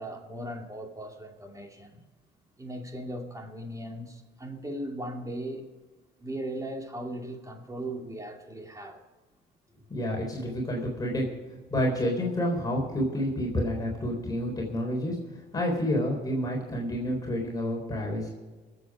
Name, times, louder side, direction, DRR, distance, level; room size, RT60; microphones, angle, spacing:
voice 1, 0.0-2.0 2.6-5.7 6.2-9.0, right 1 dB, 15° right, 3 dB, 2.7 m, -38 dB
voice 2, 9.9-11.2 11.7-15.2 15.5-18.3, equal, 20° left, -1 dB, 4.0 m, -29 dB
21.5 x 8.1 x 4.9 m, 1.3 s
cardioid pair, 90°, 19 cm